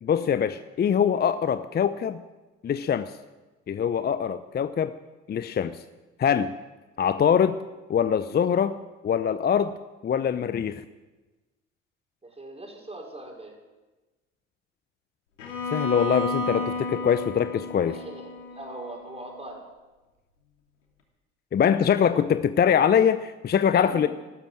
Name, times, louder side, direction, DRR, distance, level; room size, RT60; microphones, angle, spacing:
voice 1, 0.0-2.2 2.6-3.1 3.7-4.9 5.3-5.8 6.2-6.5 7.0-7.6 7.9-9.7 10.0-10.8 15.7-17.9 21.5-24.1, left 8 dB, 25° left, 13 dB, 0.7 m, -23 dB
voice 2, 12.2-13.6 17.8-19.6 23.7-24.1, right 2 dB, 15° right, 0 dB, 5.1 m, -41 dB
Bowed string instrument, 15.4-19.4, left 2 dB, 80° left, 2.8 m, -32 dB
14.0 x 13.0 x 7.6 m, 1.2 s
figure-of-eight pair, 65°, 36 cm